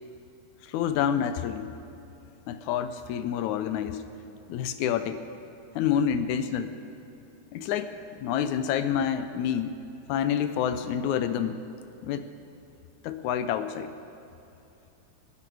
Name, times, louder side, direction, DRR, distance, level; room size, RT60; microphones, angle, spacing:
voice 1, 0.6-1.7 2.5-4.0 4.5-5.2 5.7-6.7 7.5-7.9 8.2-9.8 10.1-11.6 12.0-12.2 13.0-13.9, left 9 dB, 80° left, 10 dB, 1.8 m, -28 dB
26.0 x 9.9 x 4.6 m, 2.8 s
omnidirectional pair, 3.9 m